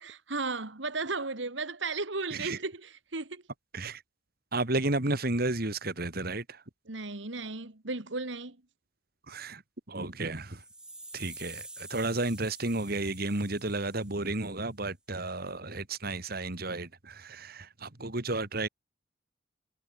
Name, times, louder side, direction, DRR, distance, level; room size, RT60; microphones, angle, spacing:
voice 1, 0.0-3.4 6.9-8.6, right 3 dB, 70° right, 2.2 m, -35 dB
voice 2, 4.5-6.6 9.3-9.6 9.9-10.6 11.1-18.7, right 2 dB, 50° right, 2.3 m, -32 dB
sound 1, 10.3-14.5, right 2 dB, 5° right, 2.6 m, -48 dB
head